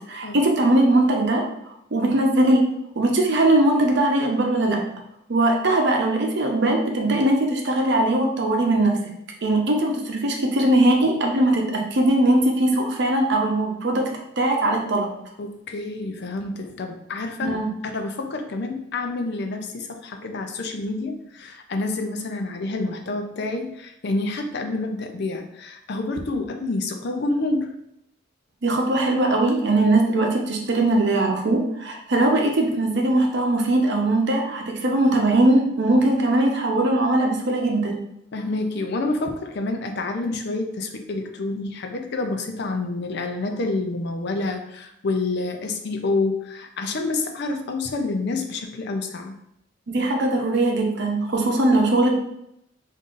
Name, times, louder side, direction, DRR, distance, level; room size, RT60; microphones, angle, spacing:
voice 1, 0.1-1.5 1.9-2.7 3.0-4.8 5.3-9.0 9.4-14.1 14.4-15.1 17.4-17.7 28.6-38.0 49.9-52.2, right 1 dB, 65° right, 1 dB, 0.7 m, -20 dB
voice 2, 15.4-17.6 17.9-27.7 38.3-49.3, left 2 dB, 60° left, 5 dB, 0.5 m, -28 dB
5.4 x 2.7 x 2.5 m, 0.78 s
head